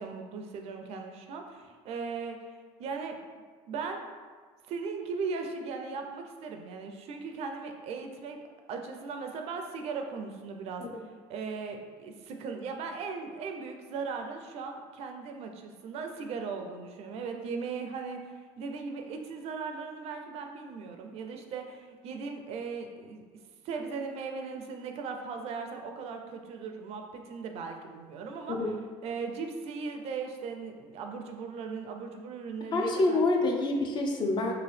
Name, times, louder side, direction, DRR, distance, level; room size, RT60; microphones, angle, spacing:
voice 1, 0.0-3.2 3.7-4.0 4.7-8.4 8.7-10.9 11.3-23.2 23.6-28.6 29.0-33.2, right 5 dB, 60° right, 4 dB, 0.4 m, -38 dB
voice 2, 32.7-34.5, left 2 dB, 40° left, 1 dB, 0.5 m, -27 dB
2.8 x 2.5 x 3.2 m, 1.5 s
supercardioid pair, 100°, 12 cm